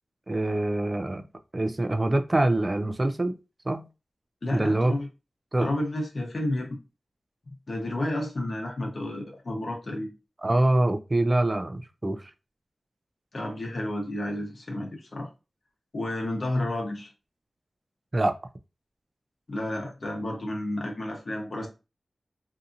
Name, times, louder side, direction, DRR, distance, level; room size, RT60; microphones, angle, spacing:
voice 1, 0.3-1.2 1.5-3.3 3.7-3.9 4.5-4.9 5.5-5.7 10.4-12.3 18.1-18.3, right 1 dB, 30° right, 0.3 m, -24 dB
voice 2, 4.4-5.1 5.6-6.7 7.7-10.1 13.3-15.3 15.9-17.1 19.5-21.7, left 1 dB, 50° left, 0.9 m, -31 dB
2.7 x 2.5 x 2.4 m
wide cardioid pair, 105°, 0 cm